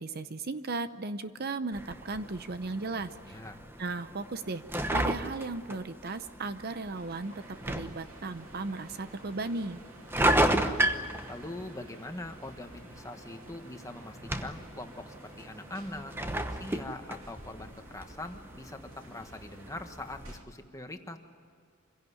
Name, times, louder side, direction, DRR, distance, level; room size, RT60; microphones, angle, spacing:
voice 1, 0.0-3.4 3.8-4.6 4.9-9.8, right 3 dB, 45° right, 12 dB, 0.7 m, -36 dB
sound 1, 1.7-20.3, right 1 dB, 10° right, 1.0 m, -34 dB
voice 2, 3.3-3.6 10.1-10.9 11.3-21.2, left 2 dB, 15° left, 6 dB, 1.4 m, -43 dB
sound 2, 6.9-20.4, right 2 dB, 80° right, 2.6 m, -55 dB
26.0 x 17.0 x 9.8 m, 2.2 s
head